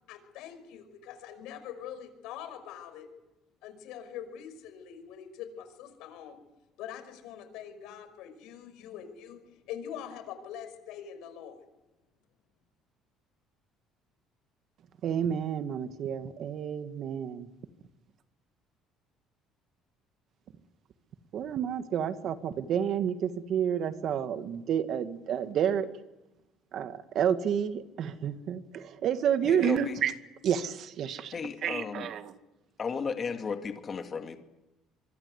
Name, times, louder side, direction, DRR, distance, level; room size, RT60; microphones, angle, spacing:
voice 1, 0.1-3.1 3.6-6.4 6.8-11.6, left 9 dB, 80° left, 9 dB, 5.7 m, -43 dB
voice 2, 15.0-17.5 21.3-25.9 26.7-30.1 30.4-32.4, right 8 dB, 50° right, 10 dB, 1.9 m, -30 dB
voice 3, 29.4-29.9 31.3-32.1 32.8-34.4, left 5 dB, 30° left, 6 dB, 2.4 m, -34 dB
26.0 x 24.0 x 8.2 m, 0.99 s
cardioid pair, 135°, 0 cm